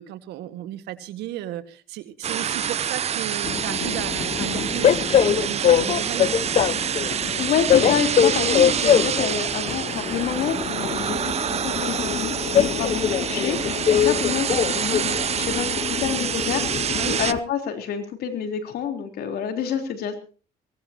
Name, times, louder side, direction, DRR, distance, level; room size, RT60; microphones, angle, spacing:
voice 1, 0.0-6.4 17.0-17.2, right 13 dB, 85° right, 10 dB, 1.8 m, -34 dB
sound 1, 2.2-17.3, right 8 dB, 40° right, 0.7 m, -27 dB
Train, 3.4-17.4, left 9 dB, 40° left, 0.7 m, -23 dB
voice 2, 7.0-20.2, left 8 dB, 65° left, 6 dB, 3.7 m, -28 dB
23.0 x 17.5 x 2.9 m, 0.37 s
cardioid pair, 110°, 17 cm